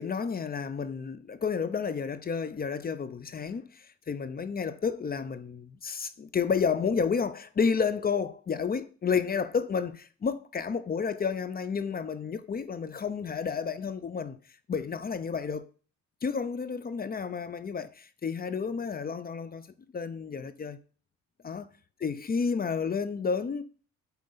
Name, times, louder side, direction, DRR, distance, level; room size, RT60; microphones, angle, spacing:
voice 1, 0.0-14.4 14.7-15.7 16.2-19.7 19.9-20.8 21.4-21.7 22.0-23.6, left 6 dB, 30° left, 0.6 m, -31 dB
7.7 x 4.3 x 4.0 m
cardioid pair, 90°, 30 cm